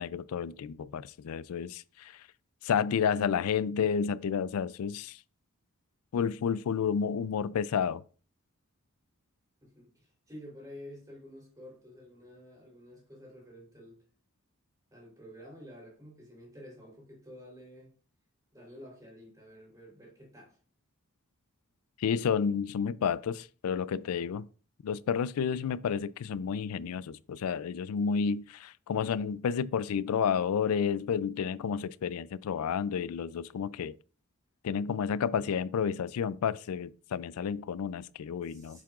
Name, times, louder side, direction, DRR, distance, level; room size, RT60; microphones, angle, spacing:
voice 1, 0.0-2.2 2.6-5.2 6.1-8.0 22.0-24.5 24.8-34.0 34.6-38.8, left 7 dB, 80° left, 0.4 m, -31 dB
voice 2, 9.6-14.0 14.9-17.9 18.5-20.6 38.5-38.8, equal, 15° right, 3.4 m, -50 dB
7.4 x 7.3 x 2.4 m
head